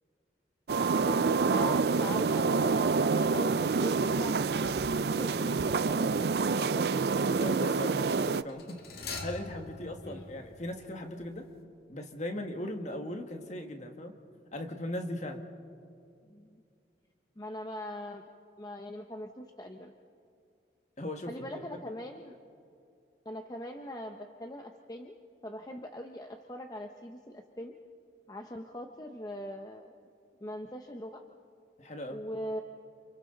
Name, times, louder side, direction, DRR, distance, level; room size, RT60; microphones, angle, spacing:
sound 1, 0.7-8.4, right 4 dB, 60° right, 0.4 m, -27 dB
voice 1, 1.0-7.0 10.0-10.3 16.2-16.6 17.4-18.2 18.6-19.9 21.3-22.4 23.2-25.2 25.4-27.8 28.3-30.0 30.4-31.2 32.1-32.6, left 1 dB, 20° left, 4 dB, 0.8 m, -41 dB
sound 2, 6.0-6.4 8.5-11.3 11.5-11.6, left 3 dB, 55° left, 2.0 m, -44 dB
voice 2, 7.4-11.5 11.9-14.1 14.5-15.4 21.0-21.5 21.9-22.0 31.8-32.2, left 1 dB, 40° left, 4 dB, 1.8 m, -38 dB
30.0 x 27.0 x 3.9 m, 2.5 s
head